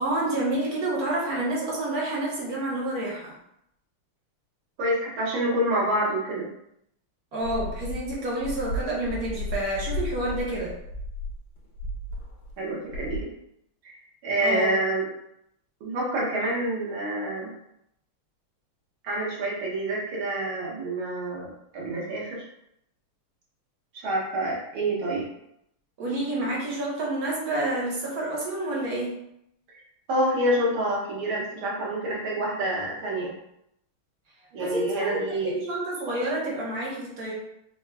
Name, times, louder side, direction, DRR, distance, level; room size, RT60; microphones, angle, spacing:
voice 1, 0.0-3.3 7.3-10.7 14.4-14.8 26.0-29.1 34.5-37.3, right 1 dB, 55° right, -4 dB, 1.2 m, -29 dB
voice 2, 4.8-6.5 12.6-13.3 13.8-14.0 14.2-15.1 15.8-17.5 19.0-22.4 23.9-25.3 30.1-33.3 34.5-35.6, right 1 dB, 70° right, -5 dB, 1.9 m, -27 dB
sound 1, 7.4-12.6 12.8-13.2, equal, 85° left, 1.5 m, -34 dB
4.3 x 2.3 x 3.3 m, 0.77 s
omnidirectional pair, 2.4 m